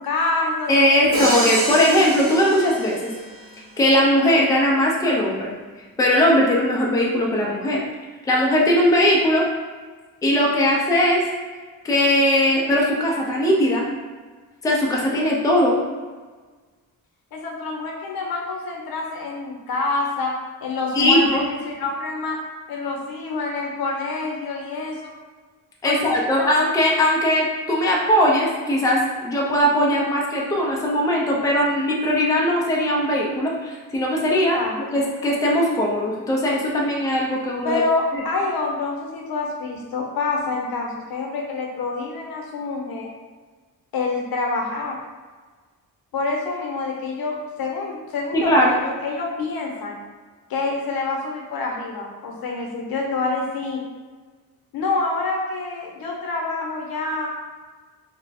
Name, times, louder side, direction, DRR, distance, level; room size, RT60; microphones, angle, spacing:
voice 1, 0.0-1.3 17.3-20.3 20.6-22.4 22.7-25.0 25.8-26.5 34.5-35.0 37.6-43.1 43.9-45.0 46.1-50.0 50.5-53.8 54.7-57.3, left 3 dB, 80° left, 0 dB, 0.8 m, -27 dB
voice 2, 0.7-3.1 3.8-5.5 6.0-7.8 8.2-9.4 10.2-11.2 11.8-13.9 14.6-15.8 20.9-21.5 25.8-34.6 34.9-37.8 38.1-38.2 48.3-48.7, equal, 10° left, -2 dB, 0.4 m, -19 dB
Crash cymbal, 1.1-3.3, right 1 dB, 50° right, 0.9 m, -27 dB
3.3 x 2.0 x 4.1 m, 1.4 s
wide cardioid pair, 165°, 35 cm